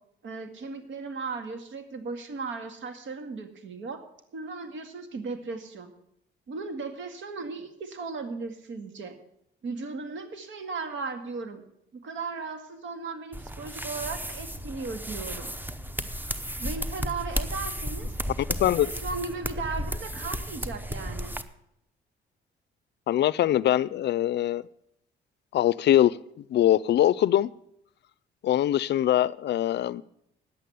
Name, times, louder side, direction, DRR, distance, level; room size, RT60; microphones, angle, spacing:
voice 1, 0.2-4.0 4.3-5.9 6.5-9.2 9.6-11.6 11.9-15.5 16.6-18.1 18.6-21.4, right 4 dB, 70° right, 2.0 m, -36 dB
sound 1, 13.3-21.4, equal, 10° right, 0.9 m, -34 dB
voice 2, 23.1-24.6 25.5-27.5 28.4-30.0, left 12 dB, 60° left, 0.4 m, -23 dB
10.0 x 8.3 x 9.2 m
cardioid pair, 90°, 20 cm